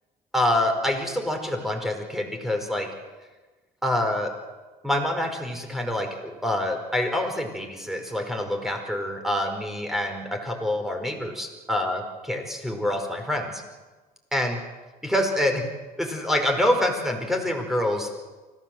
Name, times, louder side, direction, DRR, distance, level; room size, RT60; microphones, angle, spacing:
voice 1, 0.3-2.9 3.8-4.3 4.8-12.0 12.3-13.6 14.3-14.6 15.0-15.7 16.0-18.1, left 1 dB, ahead, 4 dB, 5.0 m, -26 dB
25.0 x 17.0 x 7.9 m, 1.3 s
cardioid pair, 110°, 17 cm